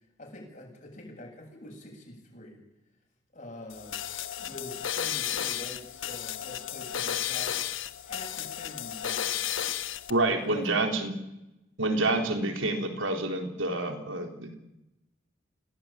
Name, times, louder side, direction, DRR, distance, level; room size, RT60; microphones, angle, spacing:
voice 1, 0.2-2.6 3.3-4.0 4.4-7.8 8.1-9.5 10.4-11.0 12.0-12.2, left 1 dB, 40° left, 1 dB, 7.7 m, -45 dB
sound 1, 3.7-10.1, left 10 dB, 85° left, 1.2 m, -33 dB
voice 2, 10.1-11.1 11.8-14.5, right 2 dB, 85° right, 4 dB, 3.9 m, -28 dB
26.5 x 17.5 x 8.9 m, 0.92 s
head